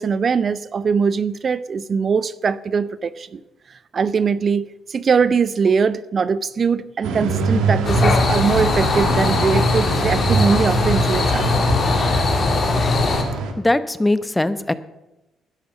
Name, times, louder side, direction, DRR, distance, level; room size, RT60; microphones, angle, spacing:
voice 1, 0.0-3.4 3.9-11.7, right 5 dB, 45° right, 17 dB, 0.6 m, -21 dB
sound 1, 7.0-13.5, right 4 dB, 70° right, 1.8 m, -24 dB
sound 2, 7.8-13.2, left 4 dB, 45° left, 3.2 m, -20 dB
voice 2, 13.5-14.7, left 2 dB, 15° left, 13 dB, 0.9 m, -21 dB
12.5 x 11.0 x 7.0 m, 0.98 s
hypercardioid pair, 45°, 0 cm